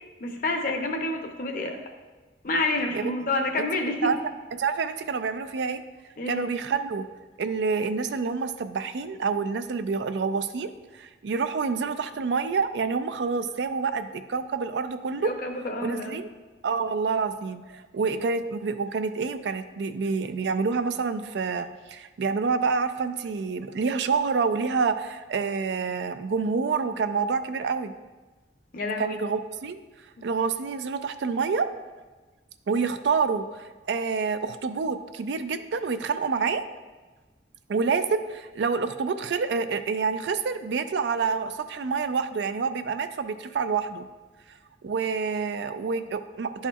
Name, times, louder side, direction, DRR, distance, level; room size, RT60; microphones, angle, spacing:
voice 1, 0.2-1.8 2.4-4.1 6.2-6.5 15.2-16.2 28.7-29.2, left 2 dB, 50° left, 4 dB, 0.7 m, -28 dB
voice 2, 4.6-5.8 6.3-7.1 7.4-15.3 15.8-16.3 16.6-27.9 29.0-29.8 30.2-31.7 32.7-36.7 37.7-44.1 44.8-46.7, right 5 dB, 75° right, 10 dB, 0.4 m, -27 dB
11.0 x 4.2 x 2.4 m, 1.3 s
head